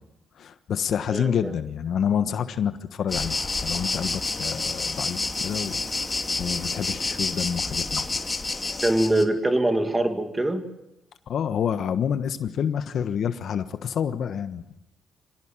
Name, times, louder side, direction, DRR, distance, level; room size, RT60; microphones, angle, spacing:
voice 1, 0.4-5.8 6.4-8.1 11.3-14.6, left 8 dB, 65° left, 10 dB, 1.3 m, -28 dB
voice 2, 1.1-1.5 8.8-10.6, right 1 dB, 15° right, 6 dB, 2.6 m, -23 dB
sound 1, 3.1-9.2, left 3 dB, 25° left, 2.6 m, -29 dB
26.0 x 18.0 x 7.4 m, 0.90 s
cardioid pair, 90°, 0 cm